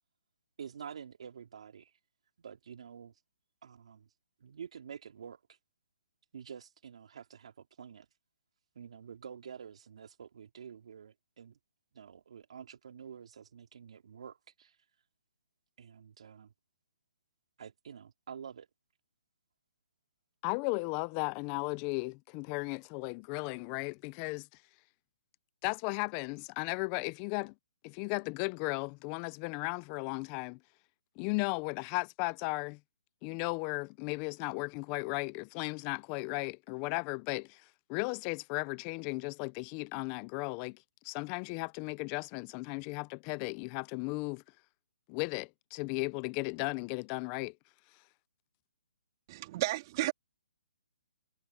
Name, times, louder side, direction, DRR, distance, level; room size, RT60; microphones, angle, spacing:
voice 1, 0.6-1.9 2.4-3.1 3.6-4.1 4.4-5.4 6.3-8.1 8.7-11.6 11.9-14.8 15.8-16.5 17.6-18.7, right 7 dB, 60° right, 2.9 m, -48 dB
voice 2, 20.4-24.5 25.6-27.5 27.8-30.6 31.2-32.8 33.2-37.6 37.9-40.8 41.0-44.4 45.1-47.5, left 29 dB, 25° left, 0.5 m, -35 dB
voice 3, 49.3-50.1, right 17 dB, 35° right, 2.7 m, -32 dB
hypercardioid pair, 150°, 4 cm